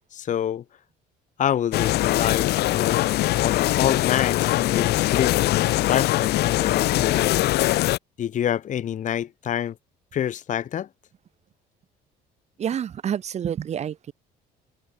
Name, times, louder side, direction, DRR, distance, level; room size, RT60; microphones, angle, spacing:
voice 1, 0.1-0.6 1.4-3.0 3.4-7.3 8.2-9.7 10.1-10.9, left 10 dB, 50° left, 1.3 m, -27 dB
sound 1, 1.7-8.0, left 16 dB, 75° left, 0.9 m, -22 dB
voice 2, 12.6-14.1, right 9 dB, 40° right, 0.8 m, -28 dB
cardioid pair, 110°, 17 cm